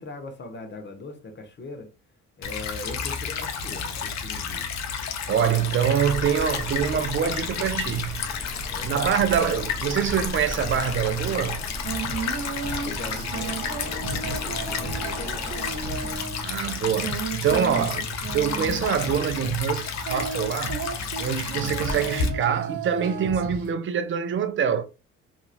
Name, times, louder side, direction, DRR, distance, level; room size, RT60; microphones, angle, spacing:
voice 1, 0.0-1.9 2.4-4.7 8.7-9.1 12.8-16.3, left 3 dB, 35° left, 0.9 m, -40 dB
Stream / Trickle dribble, 2.4-22.3, left 6 dB, 65° left, 0.6 m, -31 dB
voice 2, 5.3-8.4 8.8-11.6 16.4-20.8 21.2-24.8, right 8 dB, 40° right, 0.4 m, -25 dB
sound 1, 6.0-16.2, equal, 20° left, 1.0 m, -38 dB
Female singing, 11.8-23.7, right 4 dB, 75° right, 0.9 m, -34 dB
2.9 x 2.6 x 2.4 m
cardioid pair, 90°, 30 cm